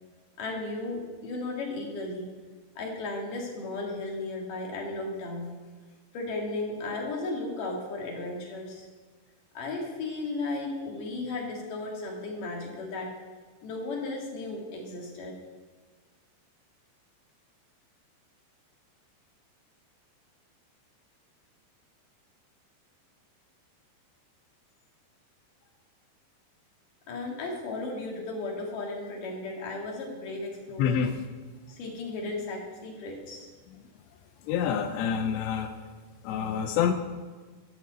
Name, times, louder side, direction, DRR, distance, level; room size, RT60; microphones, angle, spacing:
voice 1, 0.4-2.3 2.8-5.5 6.1-8.9 9.5-13.1 13.6-15.4 27.1-31.0 31.7-33.5, left 2 dB, 55° left, 0 dB, 3.2 m, -35 dB
voice 2, 30.8-31.1 34.5-35.7 36.2-36.9, left 8 dB, 85° left, 5 dB, 2.9 m, -27 dB
12.5 x 7.2 x 7.8 m, 1.5 s
omnidirectional pair, 5.1 m